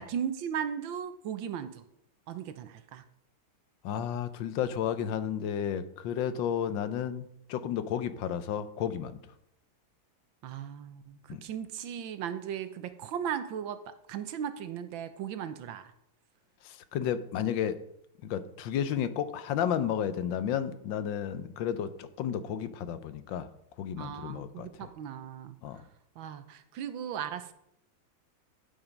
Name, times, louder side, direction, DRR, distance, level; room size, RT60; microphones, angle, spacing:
voice 1, 0.0-1.8 2.3-3.0 10.4-15.9 24.0-25.6 26.2-27.5, right 8 dB, 80° right, 10 dB, 1.6 m, -37 dB
voice 2, 3.8-9.3 11.3-11.4 16.6-17.8 18.2-23.5 23.8-24.9 25.6-25.8, left 9 dB, 75° left, 12 dB, 1.4 m, -32 dB
11.5 x 6.0 x 5.2 m, 0.78 s
omnidirectional pair, 2.1 m